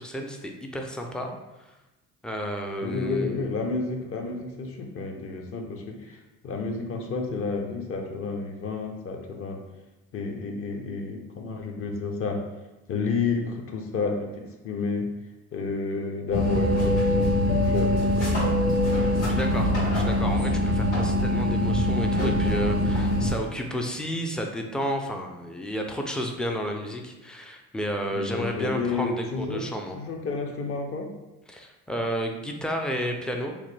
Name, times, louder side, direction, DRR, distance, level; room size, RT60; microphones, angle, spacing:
voice 1, 0.0-1.3 2.2-3.6 19.3-30.0 31.5-33.5, equal, 5° left, 2 dB, 0.3 m, -31 dB
voice 2, 2.8-9.6 10.1-12.4 12.9-15.1 15.5-18.3 28.1-29.6 29.9-31.1, left 4 dB, 40° left, 2 dB, 0.6 m, -31 dB
sound 1, 16.3-23.3, left 1 dB, 80° left, 1.5 m, -23 dB
3.0 x 2.2 x 3.1 m, 1.1 s
supercardioid pair, 75°, 35 cm